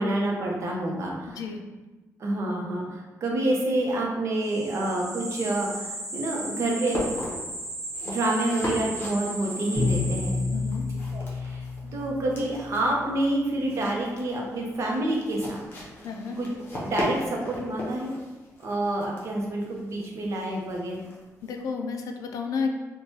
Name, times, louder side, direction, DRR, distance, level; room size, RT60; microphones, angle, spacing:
voice 1, 0.0-1.4 2.2-7.1 8.0-10.4 11.1-11.6 11.9-15.7 16.4-18.1 18.6-21.0, right 1 dB, 55° right, -1 dB, 0.6 m, -28 dB
voice 2, 1.3-1.6 10.5-10.9 16.0-16.4 21.4-22.7, left 5 dB, 85° left, 3 dB, 0.3 m, -31 dB
sound 1, 4.4-10.9, right 1 dB, 10° right, 1.0 m, -36 dB
sound 2, 5.4-21.7, left 1 dB, 40° left, 0.7 m, -39 dB
Bowed string instrument, 9.8-12.6, left 3 dB, 15° left, 1.0 m, -29 dB
3.0 x 2.1 x 2.8 m, 1.2 s
wide cardioid pair, 165°, 6 cm